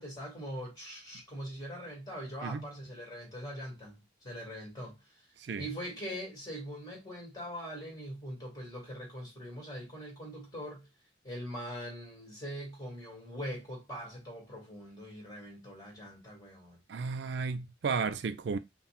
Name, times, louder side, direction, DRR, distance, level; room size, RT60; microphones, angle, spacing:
voice 1, 0.0-5.0 5.6-10.9 11.2-16.8, equal, 20° left, 2.1 m, -42 dB
voice 2, 16.9-18.6, right 5 dB, 70° right, 0.4 m, -33 dB
5.6 x 2.3 x 2.3 m
head